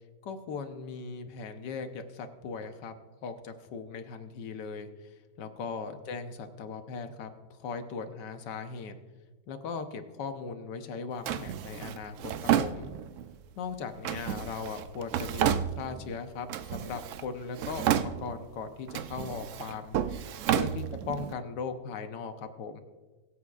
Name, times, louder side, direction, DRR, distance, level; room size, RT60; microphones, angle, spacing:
voice 1, 0.2-2.9 3.2-4.9 5.4-7.3 7.6-9.0 9.5-12.9 13.6-20.0 20.5-22.8, left 5 dB, 85° left, 7 dB, 1.5 m, -38 dB
Drawer open or close, 11.3-13.3 14.0-16.1 16.5-17.3 17.5-18.5 18.9-21.3, right 9 dB, 75° right, 0.7 m, -31 dB
23.0 x 8.1 x 2.4 m, 1.3 s
omnidirectional pair, 1.8 m